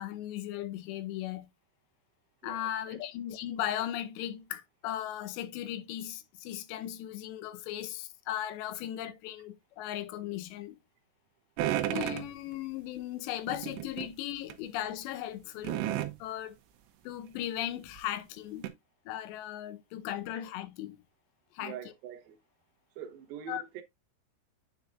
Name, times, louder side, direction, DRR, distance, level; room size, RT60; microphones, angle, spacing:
voice 1, 0.0-1.5 2.4-10.8 11.9-15.8 16.2-16.6 17.0-18.7 19.1-21.0 21.5-21.8 23.5-23.6, left 12 dB, 85° left, 2.9 m, -37 dB
voice 2, 2.4-3.0 21.6-22.4 23.0-23.8, right 9 dB, 70° right, 2.6 m, -44 dB
sound 1, 11.6-12.3 13.5-14.1 14.5-14.6 15.6-16.1 17.4-17.5 18.0-18.1 18.6-18.7, right 13 dB, 85° right, 2.8 m, -32 dB
9.9 x 4.9 x 2.4 m
omnidirectional pair, 5.0 m